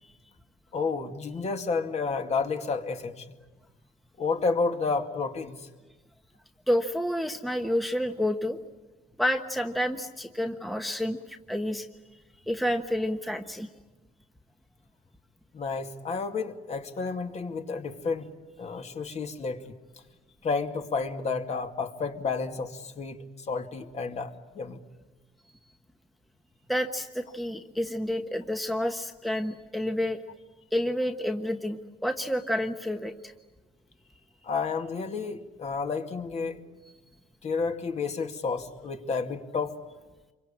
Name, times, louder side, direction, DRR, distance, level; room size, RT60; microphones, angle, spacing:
voice 1, 0.7-3.3 4.2-5.7 15.5-18.3 18.6-19.7 20.4-24.8 34.4-36.6 37.4-39.8, left 4 dB, 40° left, 5 dB, 2.3 m, -31 dB
voice 2, 6.7-8.6 9.2-11.9 12.4-13.7 26.7-30.2 30.7-33.3, equal, ahead, 6 dB, 1.2 m, -29 dB
27.0 x 24.0 x 8.7 m, 1.2 s
cardioid pair, 110°, 17 cm